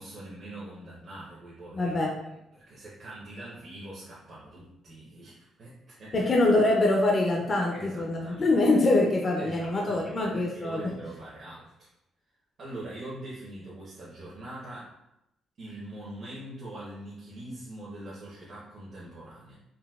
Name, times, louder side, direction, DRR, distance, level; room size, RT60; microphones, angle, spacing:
voice 1, 0.0-1.9 2.5-6.3 7.7-8.5 9.4-11.9 12.6-14.9 15.6-19.6, right 1 dB, 50° right, -8 dB, 0.9 m, -43 dB
voice 2, 1.7-2.1 6.1-10.8, left 2 dB, 40° left, -1 dB, 0.5 m, -24 dB
3.9 x 2.2 x 2.3 m, 0.85 s
cardioid pair, 90°, 0 cm